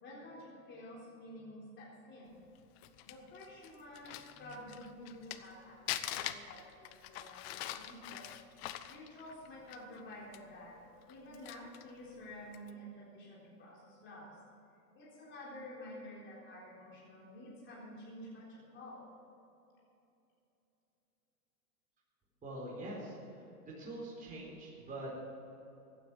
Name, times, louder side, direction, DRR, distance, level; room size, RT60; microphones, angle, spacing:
voice 1, 0.0-2.4 3.0-8.3 8.9-10.8 11.1-14.4 14.9-19.1, left 1 dB, 25° left, -5 dB, 3.9 m, -50 dB
Crumpling crinkling, 2.6-5.5 5.9-10.0 10.3-10.4 11.0-11.9 12.5-12.7, left 13 dB, 40° left, 0.8 m, -43 dB
voice 2, 22.4-23.2 23.6-25.2, right 1 dB, 20° right, -5 dB, 4.1 m, -44 dB
15.0 x 9.5 x 7.2 m, 2.9 s
hypercardioid pair, 120°, 46 cm